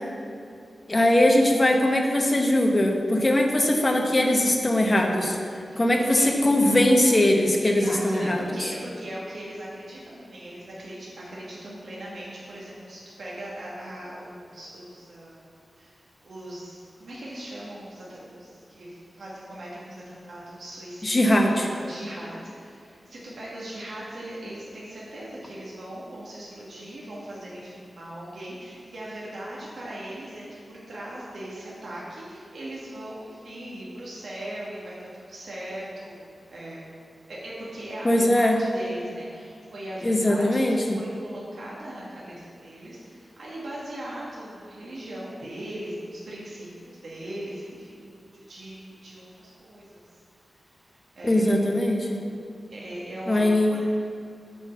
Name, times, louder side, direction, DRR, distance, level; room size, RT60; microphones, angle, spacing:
voice 1, 0.9-5.4 5.8-8.7 21.0-21.7 38.0-38.6 40.0-41.0 51.2-52.2 53.3-53.8, left 1 dB, 25° left, 2 dB, 0.9 m, -21 dB
voice 2, 7.6-15.4 15.8-16.0 16.2-21.3 21.6-36.9 37.3-50.0 51.1-51.5 52.7-53.9, right 1 dB, 75° right, -6 dB, 1.5 m, -39 dB
8.2 x 4.5 x 7.0 m, 2.6 s
wide cardioid pair, 150°, 0 cm